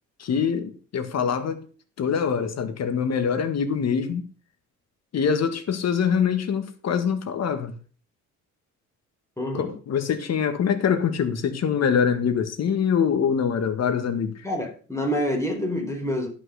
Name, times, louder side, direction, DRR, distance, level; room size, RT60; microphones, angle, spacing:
voice 1, 0.2-1.7 2.0-4.3 5.1-7.7 9.5-14.4, left 7 dB, 60° left, 1.8 m, -24 dB
voice 2, 9.4-9.7 14.4-16.3, equal, 10° left, 4.4 m, -27 dB
11.0 x 6.0 x 6.5 m
cardioid pair, 90°, 30 cm